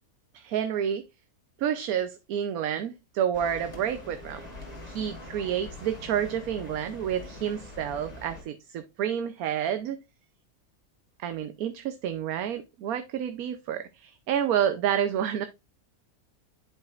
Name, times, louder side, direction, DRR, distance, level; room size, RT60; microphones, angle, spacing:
voice 1, 0.3-1.0 1.6-4.5 4.8-10.0 11.2-15.5, right 9 dB, 75° right, 1.1 m, -29 dB
sound 1, 3.3-8.4, left 2 dB, 25° left, 2.3 m, -43 dB
10.5 x 5.1 x 2.4 m
omnidirectional pair, 1.6 m